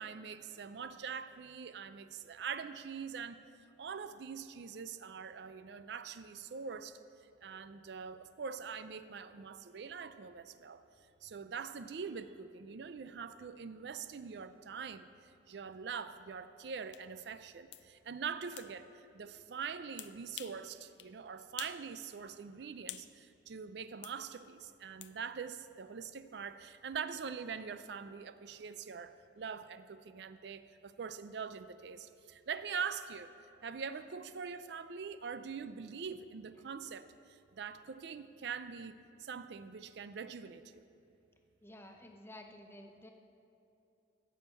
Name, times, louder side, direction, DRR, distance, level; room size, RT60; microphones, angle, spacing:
voice 1, 0.0-3.4 3.8-7.0 7.4-10.8 11.2-33.3 33.6-40.8, right 6 dB, 60° right, 12 dB, 0.4 m, -43 dB
sound 1, 16.9-17.0 17.7-17.9 18.6-18.7 20.0-20.6 21.0-21.1 21.6-21.8 22.2-23.1 24.0-24.2 25.0-25.1, left 12 dB, 70° left, 0.5 m, -47 dB
voice 2, 41.6-43.1, left 1 dB, 10° left, 4 dB, 0.7 m, -52 dB
10.5 x 6.5 x 8.0 m, 2.7 s
head